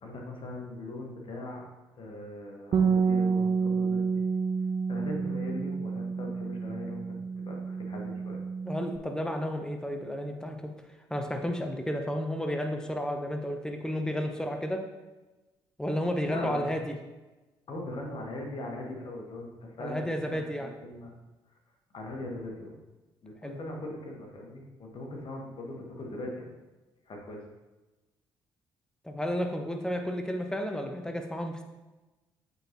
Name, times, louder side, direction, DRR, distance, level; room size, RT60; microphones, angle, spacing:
voice 1, 0.0-1.6 2.0-4.1 4.9-7.2 7.4-8.4 16.2-16.7 17.7-21.1 21.9-22.8 23.2-26.6 27.1-27.5, left 1 dB, 50° left, 0 dB, 1.5 m, -40 dB
Bass guitar, 2.7-9.0, right 5 dB, 40° right, 0.4 m, -29 dB
voice 2, 8.6-10.7 11.1-14.9 15.8-16.9 19.8-20.8 23.4-23.6 29.0-31.6, equal, 5° left, 4 dB, 0.9 m, -32 dB
7.8 x 4.1 x 3.0 m, 1.1 s
hypercardioid pair, 45°, 12 cm